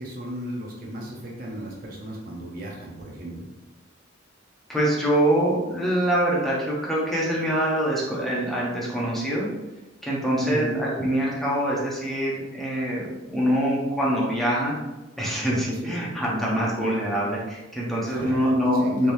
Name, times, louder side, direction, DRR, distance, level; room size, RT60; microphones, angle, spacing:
voice 1, 0.0-3.5 10.4-10.8 15.8-16.1 18.0-18.5 18.8-19.1, right 1 dB, 50° right, -2 dB, 0.7 m, -35 dB
voice 2, 4.7-9.5 10.0-14.8 15.2-19.1, equal, ahead, -6 dB, 0.7 m, -24 dB
3.4 x 2.9 x 2.6 m, 1.0 s
head